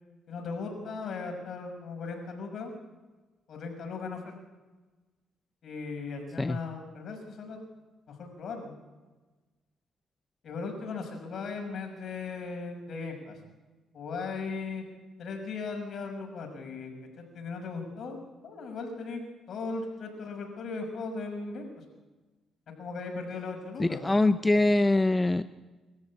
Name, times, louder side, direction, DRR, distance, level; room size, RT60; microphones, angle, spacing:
voice 1, 0.3-2.7 3.5-4.3 5.6-7.6 8.1-8.7 10.4-13.4 13.9-14.8 15.2-16.9 17.2-18.2 18.4-19.2 19.5-21.8 22.8-24.0 24.7-24.8, left 4 dB, 60° left, 3 dB, 6.1 m, -37 dB
voice 2, 23.8-25.4, left 2 dB, 15° left, 11 dB, 0.6 m, -23 dB
25.0 x 14.0 x 8.5 m, 1.2 s
cardioid pair, 90°, 0 cm